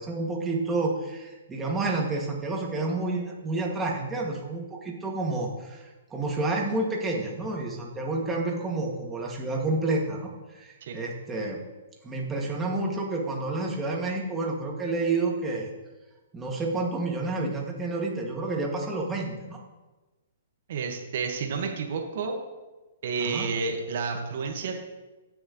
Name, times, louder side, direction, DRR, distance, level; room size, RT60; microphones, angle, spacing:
voice 1, 0.0-11.6 12.0-15.7 16.3-19.6 23.2-23.5, right 2 dB, 15° right, -1 dB, 2.4 m, -29 dB
voice 2, 20.7-22.4 23.0-24.8, right 5 dB, 60° right, 2 dB, 1.7 m, -30 dB
18.0 x 6.3 x 3.2 m, 1.1 s
hypercardioid pair, 125°, 0 cm